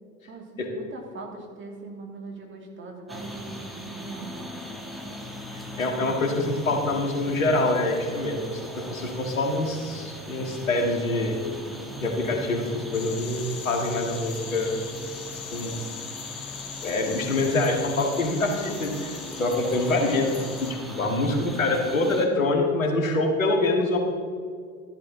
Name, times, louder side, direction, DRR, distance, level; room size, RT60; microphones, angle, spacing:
voice 1, 0.3-4.5 6.3-6.6, right 3 dB, 30° right, 1 dB, 2.6 m, -41 dB
sound 1, 3.1-22.3, left 1 dB, ahead, 1.6 m, -39 dB
voice 2, 5.8-11.4 11.9-14.7 15.5-15.7 16.8-20.3 20.9-24.0, left 2 dB, 80° left, 2 dB, 1.9 m, -25 dB
sound 2, 12.9-20.7, left 8 dB, 50° left, 1.6 m, -40 dB
13.0 x 11.5 x 3.8 m, 2.1 s
figure-of-eight pair, 75°, 40 cm